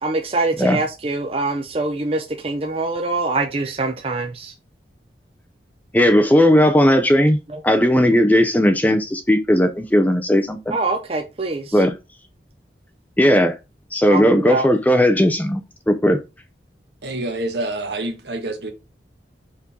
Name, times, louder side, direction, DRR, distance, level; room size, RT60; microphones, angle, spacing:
voice 1, 0.0-4.5 7.5-7.6 10.7-11.8 14.1-14.7, right 2 dB, 30° right, 0.6 m, -24 dB
voice 2, 5.9-7.4 7.6-10.8 11.7-12.0 13.2-13.6 13.9-16.2, equal, 10° left, 0.5 m, -16 dB
voice 3, 17.0-18.7, right 2 dB, 70° right, 1.5 m, -27 dB
6.0 x 4.4 x 3.7 m
head